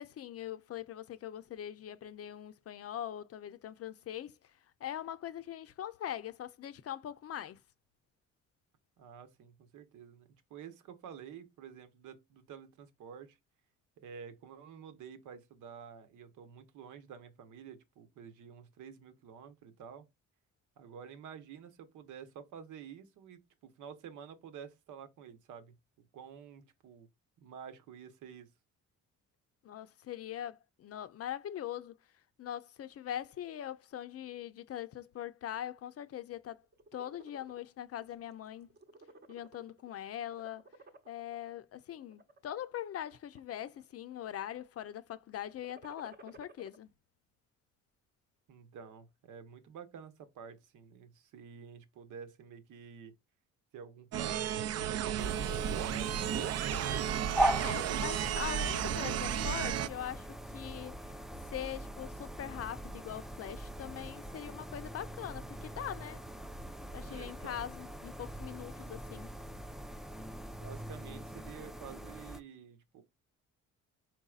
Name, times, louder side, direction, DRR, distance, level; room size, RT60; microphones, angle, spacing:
voice 1, 0.0-4.3 4.8-7.6 29.6-31.9 32.4-36.6 36.9-38.7 39.3-40.6 41.1-46.9 57.5-60.3 60.5-61.1 61.5-66.2 66.9-69.3, left 11 dB, 50° left, 0.5 m, -42 dB
voice 2, 9.0-13.4 14.0-20.1 20.8-27.1 27.4-28.5 48.5-53.1 53.7-56.2 67.0-67.7 70.5-73.0, right 7 dB, 85° right, 1.0 m, -50 dB
sound 1, 36.6-37.6 38.1-38.3 38.6-39.9 40.2-41.4 42.0-42.5 43.1-43.8 44.1-44.6 45.5-46.8, right 2 dB, 35° right, 0.8 m, -56 dB
sound 2, 54.1-59.9, right 10 dB, 55° right, 0.5 m, -33 dB
sound 3, 55.2-72.4, right 1 dB, ahead, 0.4 m, -40 dB
4.6 x 4.1 x 2.4 m
cardioid pair, 90°, 30 cm